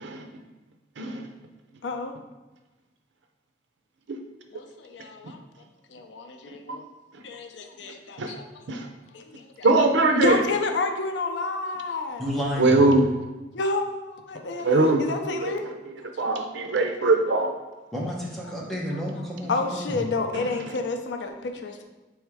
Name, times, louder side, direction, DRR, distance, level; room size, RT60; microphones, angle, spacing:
voice 1, 1.8-2.2 4.5-5.4 5.9-6.8 7.2-8.4 9.1-9.7 10.2-12.3 13.5-15.7 16.2-16.3 19.5-21.8, left 3 dB, 70° left, 5 dB, 0.5 m, -30 dB
voice 2, 9.6-10.4 12.6-13.0 14.6-15.0 15.3-15.5 16.2-17.5, right 2 dB, 75° right, 4 dB, 0.6 m, -21 dB
voice 3, 12.2-12.9 17.9-20.0, equal, ahead, -4 dB, 0.8 m, -31 dB
3.5 x 3.2 x 4.6 m, 1.1 s
head